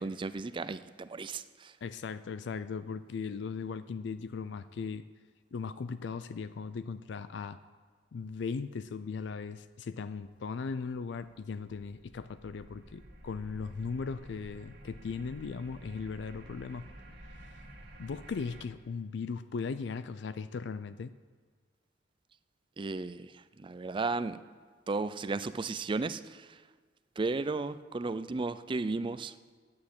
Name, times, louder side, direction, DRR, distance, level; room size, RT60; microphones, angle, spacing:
voice 1, 0.0-1.8 22.8-24.4 24.9-26.6 27.2-29.3, right 3 dB, 25° right, 13 dB, 0.4 m, -34 dB
voice 2, 1.8-5.1 5.5-7.6 8.1-16.9 17.3-17.6 18.0-21.1, left 5 dB, 70° left, 13 dB, 0.4 m, -38 dB
sound 1, 11.3-18.7, right 1 dB, 60° right, 1.8 m, -51 dB
9.7 x 8.5 x 8.7 m, 1.5 s
head